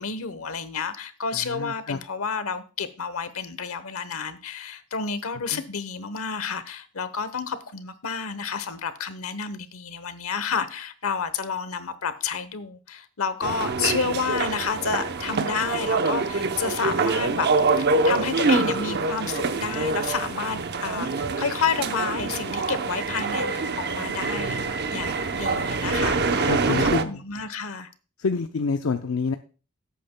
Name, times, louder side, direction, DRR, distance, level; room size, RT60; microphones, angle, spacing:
voice 1, 0.0-17.5 18.0-24.6 24.9-27.9, left 5 dB, 90° left, 1.0 m, -30 dB
voice 2, 1.3-2.0 5.5-5.6 26.4-27.2 28.2-29.3, left 4 dB, 75° left, 0.6 m, -27 dB
sound 1, 13.4-27.0, right 3 dB, 50° right, 0.8 m, -25 dB
17.0 x 8.5 x 2.2 m
head